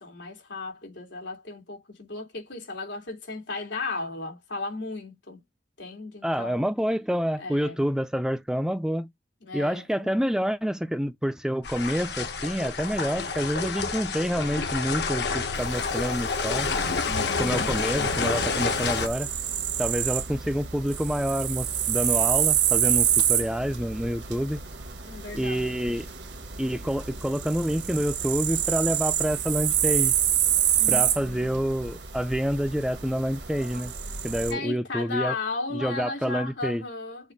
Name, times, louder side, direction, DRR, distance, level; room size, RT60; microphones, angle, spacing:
voice 1, 0.0-5.4 5.8-6.7 7.4-7.8 9.4-10.2 17.0-18.2 20.3-20.5 25.0-25.9 30.8-31.6 34.5-37.3, left 3 dB, 90° left, 3.1 m, -36 dB
voice 2, 6.2-9.1 9.5-16.7 17.4-19.3 19.8-24.6 25.3-26.1 26.6-30.1 30.9-33.9 34.2-35.3 35.7-36.8, equal, 5° right, 0.4 m, -28 dB
sound 1, 11.6-19.1, left 4 dB, 65° left, 1.1 m, -28 dB
sound 2, 15.5-34.5, right 10 dB, 75° right, 1.3 m, -28 dB
7.2 x 2.6 x 5.3 m
head